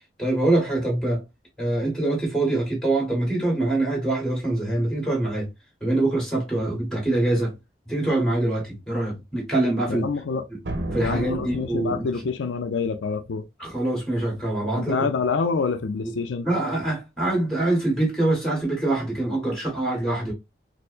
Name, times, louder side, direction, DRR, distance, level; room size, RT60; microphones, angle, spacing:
voice 1, 0.2-1.2 1.6-5.4 5.8-7.5 7.9-10.1 10.9-12.1 13.6-15.0 16.4-20.3, right 2 dB, 5° left, 1.6 m, -24 dB
voice 2, 9.9-10.4 11.0-13.4 14.8-16.5, left 5 dB, 90° left, 0.4 m, -26 dB
sound 1, 10.6-12.4, right 1 dB, 80° right, 0.8 m, -33 dB
4.3 x 2.1 x 2.4 m
head